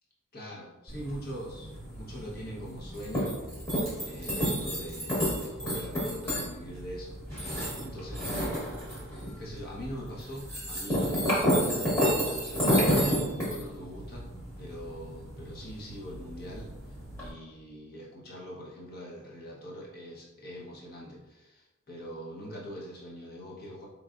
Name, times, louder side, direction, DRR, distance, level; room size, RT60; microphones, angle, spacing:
voice 1, 0.3-3.4 4.0-8.7 9.1-14.3 14.6-16.7 17.2-23.9, equal, 45° left, -4 dB, 1.0 m, -43 dB
sound 1, 0.9-17.3, equal, 10° left, 1.3 m, -31 dB
4.7 x 3.4 x 2.5 m, 1.1 s
head